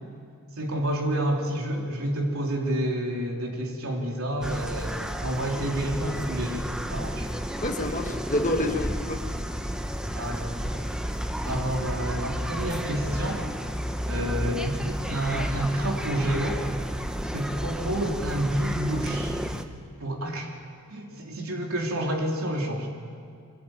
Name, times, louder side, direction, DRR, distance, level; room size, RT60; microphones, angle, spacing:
voice 1, 0.6-7.3 10.1-10.8 11.4-13.5 14.1-16.6 17.3-19.4 20.0-20.5 20.9-22.9, right 1 dB, 75° right, 0 dB, 3.5 m, -29 dB
sound 1, 4.4-19.6, equal, 5° right, 0.9 m, -32 dB
voice 2, 7.6-9.2 11.4-11.5, left 1 dB, 35° left, 5 dB, 1.5 m, -28 dB
23.5 x 17.0 x 9.1 m, 2.3 s
head